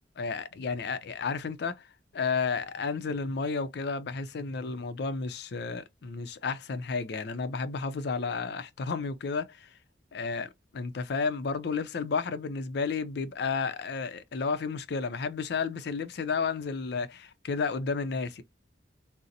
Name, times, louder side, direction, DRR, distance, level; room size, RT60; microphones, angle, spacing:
voice 1, 0.2-1.9 2.1-9.7 10.1-18.4, left 4 dB, 65° left, 0.4 m, -32 dB
3.9 x 2.0 x 2.7 m
head